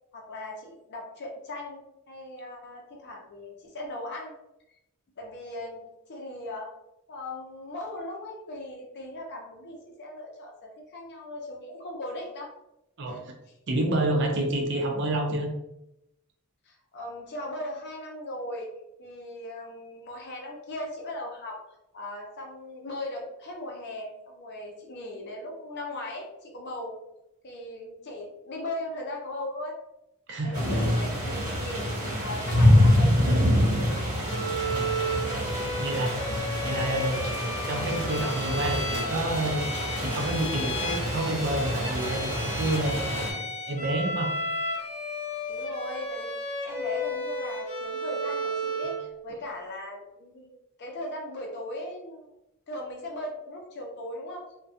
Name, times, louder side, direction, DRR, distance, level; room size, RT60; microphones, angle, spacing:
voice 1, 0.1-1.8 2.1-4.3 5.2-5.8 6.1-6.7 7.1-12.5 13.0-13.3 16.7-18.7 19.0-21.6 21.9-26.9 27.4-29.8 30.4-31.9 32.2-34.3 45.5-46.3 46.6-50.5 50.8-52.3 52.7-54.4, left 1 dB, 50° left, 0 dB, 0.5 m, -38 dB
voice 2, 13.7-15.5 30.3-30.6 34.7-34.9 35.8-36.2 36.6-37.2 37.7-39.7 40.0-43.2 43.7-44.3, right 1 dB, 55° right, 2 dB, 0.5 m, -28 dB
sound 1, 30.5-43.3, left 1 dB, 35° right, 1.2 m, -26 dB
Bowed string instrument, 34.2-49.1, equal, 30° left, 1.0 m, -33 dB
2.6 x 2.2 x 2.4 m, 0.86 s
head